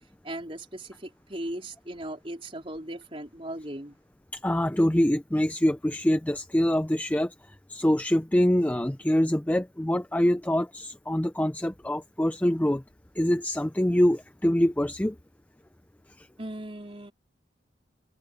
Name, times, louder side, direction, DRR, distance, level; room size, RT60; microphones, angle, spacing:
voice 1, 0.2-4.0 16.4-17.1, right 1 dB, 30° right, 4.1 m, -38 dB
voice 2, 4.3-7.3 7.7-12.8 13.2-15.2 16.2-16.3, left 1 dB, 10° left, 0.4 m, -25 dB
head